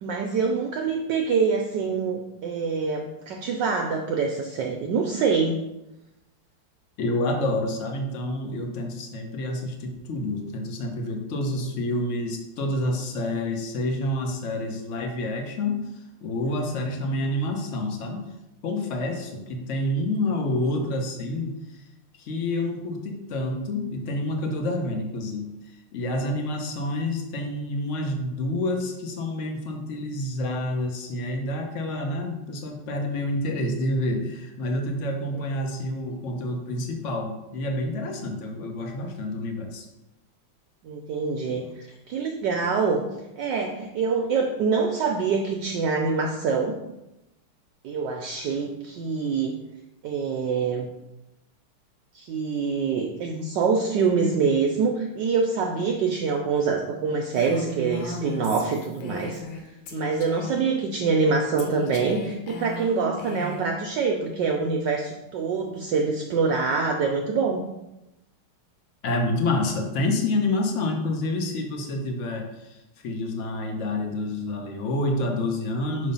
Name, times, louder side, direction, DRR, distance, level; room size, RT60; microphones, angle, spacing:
voice 1, 0.0-5.6 16.5-16.6 40.8-43.0 43.4-46.8 47.8-49.6 50.0-50.9 52.1-59.4 59.9-67.6, right 5 dB, 75° right, 3 dB, 1.0 m, -25 dB
voice 2, 7.0-15.8 16.2-18.3 18.6-21.8 22.2-25.5 25.9-39.9 41.5-41.7 69.0-76.1, left 1 dB, 55° left, 3 dB, 0.8 m, -28 dB
Female speech woman speaking, 57.3-59.6 59.9-60.6 61.6-63.7, left 2 dB, 85° left, 1.8 m, -36 dB
6.1 x 3.2 x 5.2 m, 0.94 s
omnidirectional pair, 2.3 m